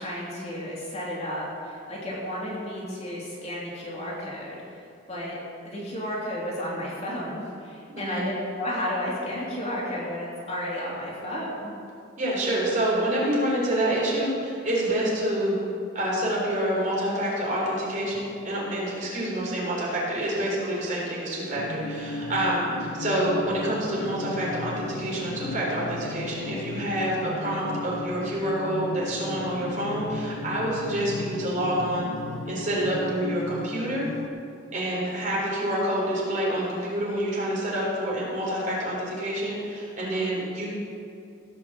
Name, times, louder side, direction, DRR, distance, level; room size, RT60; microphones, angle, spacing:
voice 1, 0.0-5.4 5.6-11.7 22.5-22.6 34.9-35.4 40.0-40.3, left 1 dB, 35° left, -5 dB, 2.9 m, -33 dB
voice 2, 7.9-8.2 12.2-15.5 15.9-32.1 32.5-34.1 34.7-40.7, right 1 dB, 40° right, -5 dB, 3.9 m, -27 dB
sound 1, 21.5-34.3, left 2 dB, 85° left, 0.8 m, -35 dB
16.5 x 5.9 x 7.4 m, 2.4 s
head